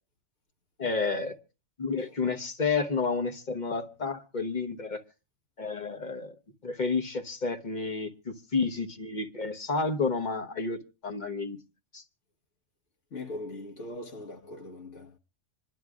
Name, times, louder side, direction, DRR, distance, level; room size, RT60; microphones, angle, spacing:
voice 1, 0.8-1.4 1.8-5.0 5.6-6.3 6.6-11.6 11.9-12.0, left 4 dB, 40° left, 1.1 m, -30 dB
voice 2, 13.1-15.2, left 2 dB, 75° left, 1.8 m, -41 dB
27.0 x 11.0 x 2.4 m
omnidirectional pair, 1.3 m